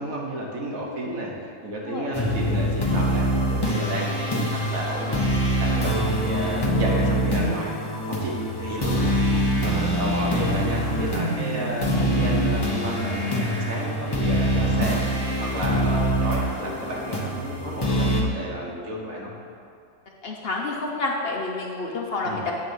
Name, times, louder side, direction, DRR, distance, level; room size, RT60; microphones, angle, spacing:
voice 1, 0.0-7.8 8.1-9.2 9.6-15.0 15.4-19.3 22.2-22.5, right 1 dB, 75° right, -3 dB, 1.7 m, -31 dB
sound 1, 2.1-18.2, equal, 20° left, 0.8 m, -24 dB
voice 2, 20.2-22.5, left 3 dB, 55° left, -1 dB, 0.8 m, -29 dB
8.5 x 4.1 x 6.3 m, 2.4 s
omnidirectional pair, 1.5 m